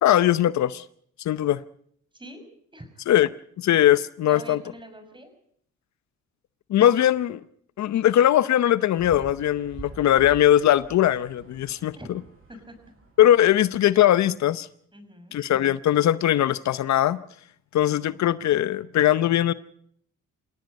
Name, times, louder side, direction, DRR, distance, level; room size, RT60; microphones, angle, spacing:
voice 1, 0.0-0.8 1.2-1.6 3.1-3.3 3.6-4.6 6.7-7.4 7.8-12.0 13.2-14.7 15.3-17.2 17.7-19.5, left 12 dB, 65° left, 15 dB, 0.8 m, -20 dB
voice 2, 2.1-2.4 2.7-3.0 4.3-5.3 12.0-12.1 12.5-12.8 14.9-15.4, equal, 15° right, 8 dB, 6.4 m, -44 dB
sound 1, 8.9-13.6, right 4 dB, 45° right, 8.0 m, -46 dB
27.5 x 17.5 x 5.3 m, 0.63 s
cardioid pair, 90°, 30 cm